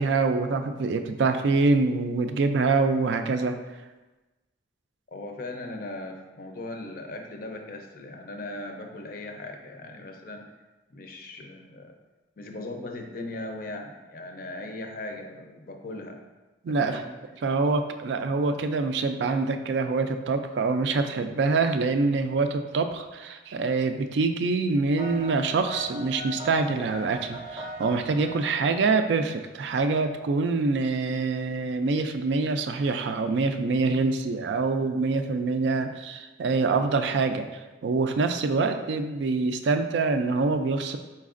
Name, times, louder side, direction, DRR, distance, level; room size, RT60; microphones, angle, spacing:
voice 1, 0.0-3.5 16.6-17.0 17.4-37.5 37.8-41.0, right 3 dB, 70° right, 7 dB, 0.3 m, -25 dB
voice 2, 5.1-10.4 10.9-11.9 12.4-16.2 16.8-17.1, left 2 dB, 50° left, 3 dB, 0.5 m, -38 dB
sound 1, 25.0-29.2, right 1 dB, 25° right, 0.6 m, -40 dB
4.6 x 4.1 x 2.4 m, 1.2 s
head